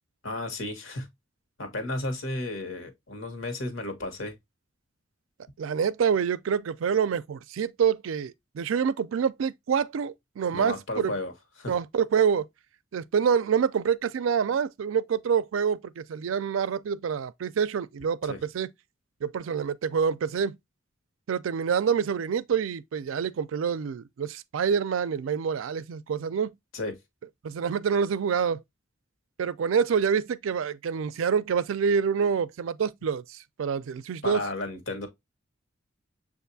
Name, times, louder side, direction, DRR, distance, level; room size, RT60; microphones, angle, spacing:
voice 1, 0.2-1.1 1.6-4.3 10.5-11.3 11.6-11.7 18.2-18.4 26.7-27.0 34.2-35.1, left 2 dB, 75° left, 1.2 m, -33 dB
voice 2, 5.6-11.1 11.7-12.5 12.9-18.7 19.2-20.6 21.3-26.6 27.4-28.6 29.4-34.4, right 7 dB, 80° right, 0.4 m, -27 dB
6.6 x 2.5 x 2.6 m
head